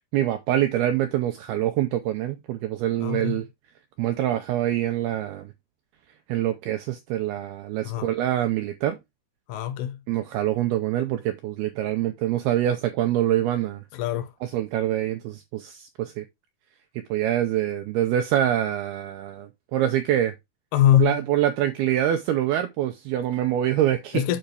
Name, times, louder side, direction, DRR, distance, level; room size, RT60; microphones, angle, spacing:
voice 1, 0.1-3.5 4.0-5.5 6.3-9.0 10.1-13.8 14.4-16.3 17.1-20.3 21.0-24.3, right 12 dB, 85° right, 2.2 m, -25 dB
voice 2, 3.0-3.4 7.9-8.1 9.5-10.0 13.9-14.3 20.7-21.2 24.1-24.4, left 11 dB, 80° left, 2.3 m, -22 dB
9.2 x 5.7 x 3.4 m
omnidirectional pair, 5.3 m